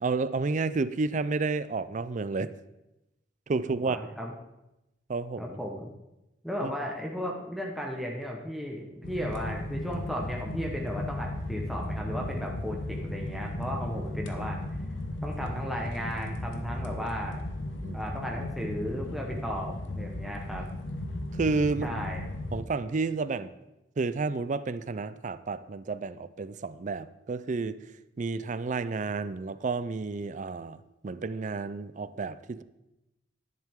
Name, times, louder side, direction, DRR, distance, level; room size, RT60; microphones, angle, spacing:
voice 1, 0.0-2.5 3.5-4.0 5.1-5.6 6.6-6.7 17.8-18.0 21.3-21.9 22.5-23.5 24.0-27.8 28.2-30.8 31.0-32.6, right 4 dB, 40° right, 14 dB, 0.4 m, -30 dB
voice 2, 3.8-4.3 5.4-5.9 6.4-14.6 15.2-17.4 17.9-20.7 21.8-22.2, equal, ahead, -1 dB, 1.1 m, -35 dB
sound 1, 9.0-22.6, left 1 dB, 85° left, 1.0 m, -36 dB
11.0 x 10.5 x 3.6 m, 0.94 s
head